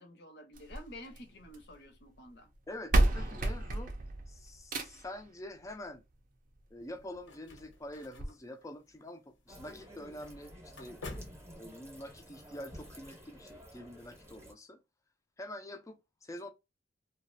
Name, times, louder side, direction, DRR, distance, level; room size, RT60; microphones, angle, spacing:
voice 1, 0.0-2.5, left 1 dB, 60° left, 0.7 m, -50 dB
sound 1, 0.5-1.7 2.6-2.7 2.9-5.2 6.5-6.6 7.1-7.2 7.5-7.6 8.2-8.3, right 1 dB, 45° right, 0.4 m, -30 dB
voice 2, 2.7-3.9 4.3-6.0 6.7-11.0 11.6-14.8 15.4-16.5, left 1 dB, 15° left, 0.3 m, -46 dB
sound 2, 6.8-12.1, left 2 dB, 85° left, 0.9 m, -51 dB
sound 3, 9.5-14.5, equal, 15° right, 0.7 m, -52 dB
2.4 x 2.0 x 2.5 m
head